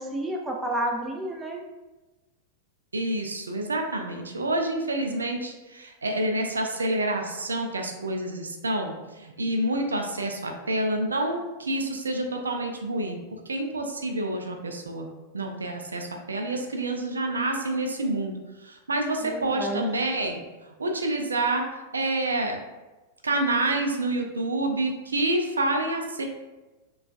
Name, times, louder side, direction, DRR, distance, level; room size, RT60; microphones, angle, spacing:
voice 1, 0.0-1.6 19.2-19.9, right 1 dB, 10° right, 1 dB, 0.6 m, -30 dB
voice 2, 2.9-13.2 13.5-15.1 15.3-18.3 18.6-20.4 20.8-21.7 21.9-22.6 23.2-26.2, right 2 dB, 75° right, 3 dB, 0.4 m, -28 dB
6.6 x 2.3 x 2.4 m, 1.1 s
figure-of-eight pair, 90°, 0 cm